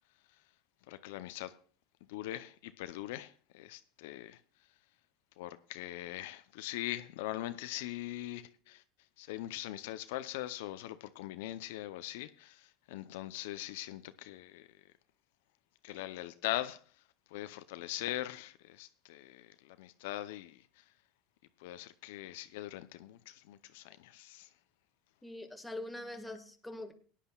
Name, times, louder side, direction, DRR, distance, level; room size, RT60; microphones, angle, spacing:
voice 1, 0.9-1.5 2.1-4.4 5.4-8.8 9.2-12.6 12.9-14.7 15.8-16.8 17.3-19.5 19.8-20.6 21.6-24.5, left 15 dB, 80° left, 0.6 m, -41 dB
voice 2, 25.2-26.9, left 1 dB, 5° left, 1.6 m, -43 dB
18.5 x 10.0 x 2.3 m
supercardioid pair, 115°, 0 cm